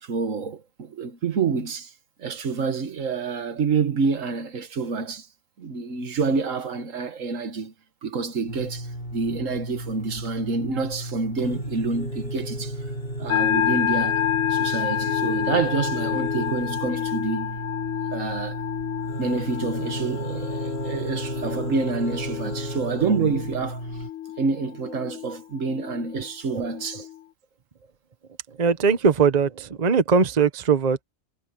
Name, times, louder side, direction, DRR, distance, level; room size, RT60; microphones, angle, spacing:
voice 1, 0.0-1.9 2.2-5.3 5.6-7.7 8.0-12.8 13.2-14.2 14.5-17.6 18.1-18.6 19.2-23.8 24.4-27.1, right 4 dB, 75° right, 1.7 m, -27 dB
sound 1, 8.5-24.1, right 1 dB, 45° left, 3.6 m, -33 dB
sound 2, 13.3-27.2, left 11 dB, 85° left, 1.3 m, -29 dB
voice 2, 28.5-31.0, right 5 dB, 35° right, 1.0 m, -21 dB
omnidirectional pair, 1.3 m